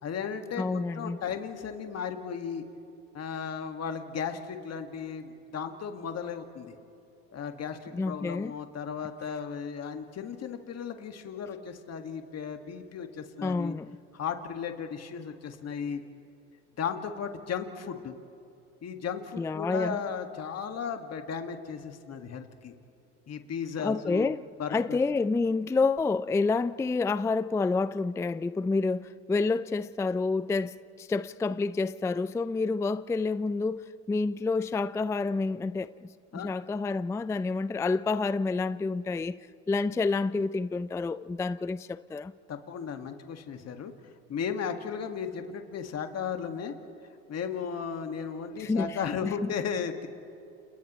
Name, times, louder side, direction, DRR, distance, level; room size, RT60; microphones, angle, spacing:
voice 1, 0.0-2.6 3.1-6.7 7.3-13.8 14.1-16.0 16.8-18.1 18.8-22.7 23.3-24.3 24.6-25.0 36.3-36.5 42.5-43.9 44.3-46.7 47.3-50.1, left 6 dB, 45° left, 1.9 m, -35 dB
voice 2, 0.6-1.2 7.9-8.5 13.4-13.9 19.4-20.0 23.8-24.4 24.7-35.9 36.3-39.3 39.7-42.3 48.6-49.3, left 3 dB, 10° left, 0.3 m, -28 dB
30.0 x 28.0 x 3.1 m
supercardioid pair, 80°, 36 cm